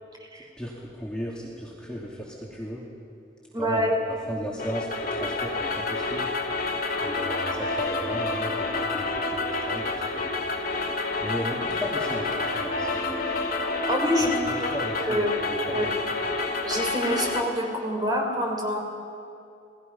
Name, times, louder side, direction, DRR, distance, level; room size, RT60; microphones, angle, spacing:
voice 1, 0.6-2.8 3.6-6.3 7.0-10.4 11.2-13.4 14.2-15.9, equal, 5° left, -5 dB, 2.7 m, -35 dB
voice 2, 3.5-4.0 13.9-14.7 15.0-15.5 15.7-16.0 16.6-18.8, equal, 20° right, 1 dB, 3.5 m, -26 dB
sound 1, 4.6-17.4, left 3 dB, 55° left, 2.6 m, -29 dB
29.0 x 19.5 x 5.5 m, 2.5 s
head